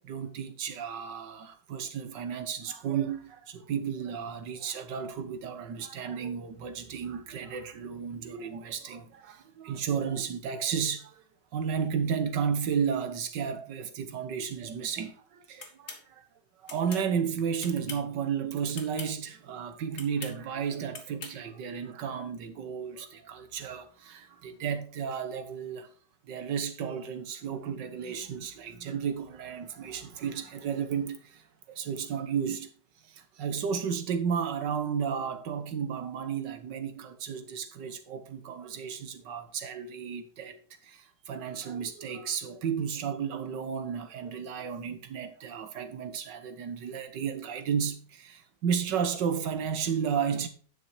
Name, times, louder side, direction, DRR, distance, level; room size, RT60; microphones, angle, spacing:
voice 1, 0.0-11.2 11.5-16.2 16.6-25.9 26.3-31.4 31.7-32.7 33.1-40.6 40.8-50.5, right 7 dB, 85° right, 1.8 m, -33 dB
sound 1, 15.6-16.0 16.7-17.1 17.6-18.1 18.7-19.1 19.9-20.4 20.9-21.4, left 4 dB, 45° left, 2.1 m, -42 dB
10.5 x 6.3 x 4.7 m
omnidirectional pair, 1.9 m